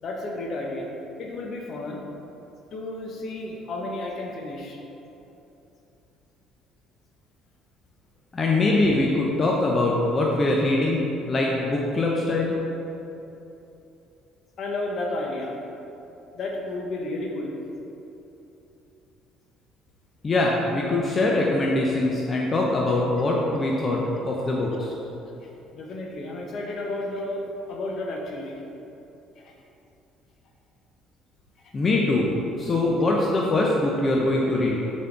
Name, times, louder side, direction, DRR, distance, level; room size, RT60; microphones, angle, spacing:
voice 1, 0.0-0.9 1.2-2.0 2.7-4.8 14.6-15.6 16.3-17.5 24.7-24.8 25.2-28.6 29.4-29.5 31.6-31.7, left 2 dB, 55° left, -1 dB, 1.2 m, -32 dB
voice 2, 8.3-12.6 20.2-24.9 31.7-32.3 32.6-34.8, left 2 dB, 35° left, -2 dB, 0.9 m, -23 dB
6.7 x 4.3 x 5.1 m, 2.9 s
hypercardioid pair, 60°, 0 cm